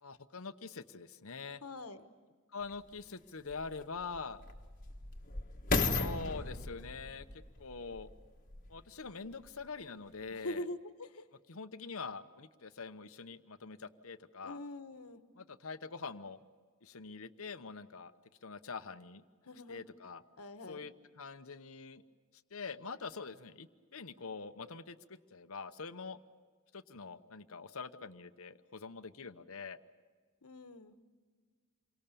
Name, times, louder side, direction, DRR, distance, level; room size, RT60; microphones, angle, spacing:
voice 1, 0.0-1.6 2.5-4.4 5.8-7.3 7.6-8.1 8.7-10.6 11.5-14.6 15.4-16.4 16.8-18.1 18.4-19.2 19.7-20.2 20.7-22.0 22.5-26.2 26.7-29.8, left 4 dB, 65° left, 11 dB, 1.0 m, -45 dB
voice 2, 1.6-2.0 10.3-11.3 14.4-15.2 19.4-19.9 20.4-20.8 30.4-31.0, left 1 dB, 85° left, 9 dB, 1.5 m, -44 dB
sound 1, 2.7-2.8 3.5-8.8 9.4-9.5, left 3 dB, 40° left, 1.5 m, -36 dB
28.0 x 23.5 x 7.0 m, 1.5 s
head